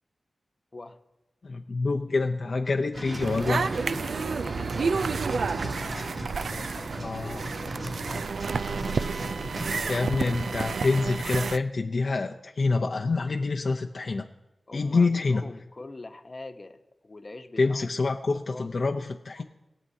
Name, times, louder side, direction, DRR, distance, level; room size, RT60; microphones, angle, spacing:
voice 1, 1.4-3.8 7.0-7.4 9.9-14.3 14.7-15.4 17.6-19.4, left 3 dB, 60° left, 3 dB, 0.6 m, -26 dB
sound 1, 2.9-9.8, right 1 dB, 55° right, 2.7 m, -37 dB
sound 2, 3.2-11.6, right 5 dB, 80° right, 0.3 m, -30 dB
voice 2, 4.0-8.3 9.2-10.8 14.7-18.8, left 2 dB, 35° left, 6 dB, 0.9 m, -45 dB
21.5 x 7.5 x 2.8 m, 0.99 s
wide cardioid pair, 75°, 0 cm